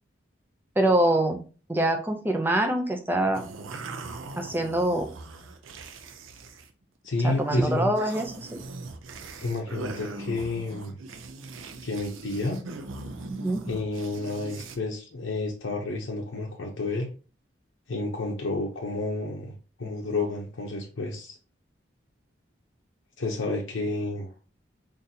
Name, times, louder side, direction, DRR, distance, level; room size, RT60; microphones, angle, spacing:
voice 1, 0.8-1.4 1.7-3.4 4.4-5.1 7.2-8.5 13.3-13.6, right 1 dB, 10° right, 4 dB, 0.4 m, -24 dB
sound 1, 3.3-6.7 7.0-7.4 7.8-14.8, right 3 dB, 90° right, 0.5 m, -40 dB
voice 2, 7.0-7.9 9.4-11.0 11.8-12.6 13.7-17.1 17.9-21.4 23.2-24.3, left 2 dB, 75° left, -1 dB, 0.6 m, -30 dB
3.9 x 2.5 x 2.7 m, 0.36 s
head